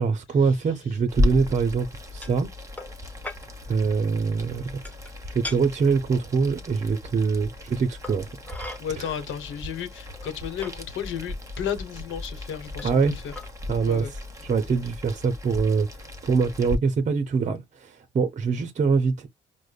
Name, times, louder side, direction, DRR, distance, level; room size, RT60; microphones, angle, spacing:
voice 1, 0.0-1.9 2.1-2.5 3.7-4.7 5.3-8.3 9.0-9.2 12.8-13.1 13.7-19.3, right 5 dB, 40° right, 0.6 m, -24 dB
Boiling, 1.1-16.8, left 1 dB, 15° right, 1.2 m, -35 dB
sound 1, 2.2-2.4 2.8-3.0 3.2-3.4 4.8-5.1 5.4-5.6 6.9-7.0 8.0-8.8 9.7-9.8 10.1-10.7 11.6-11.7 12.8-13.0 13.3-13.5, left 2 dB, 5° left, 0.9 m, -38 dB
voice 2, 8.8-13.3 13.8-14.1, left 8 dB, 75° left, 1.0 m, -33 dB
4.9 x 2.1 x 2.3 m
cardioid pair, 90°, 20 cm